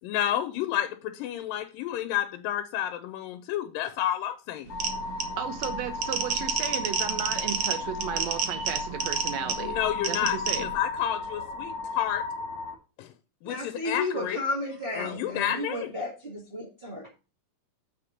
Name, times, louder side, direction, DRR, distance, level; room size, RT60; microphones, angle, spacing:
voice 1, 0.0-4.7 9.6-12.2 13.0-13.1 13.4-14.4 15.0-15.9, left 11 dB, 85° left, 2.3 m, -30 dB
sound 1, 4.7-12.7, left 4 dB, 40° left, 1.8 m, -35 dB
sound 2, 4.7-10.8, right 6 dB, 65° right, 1.4 m, -30 dB
voice 2, 5.4-9.8 10.1-10.7, right 9 dB, 85° right, 1.5 m, -34 dB
voice 3, 13.4-17.1, left 1 dB, 40° right, 0.7 m, -33 dB
7.3 x 5.2 x 5.8 m
omnidirectional pair, 4.0 m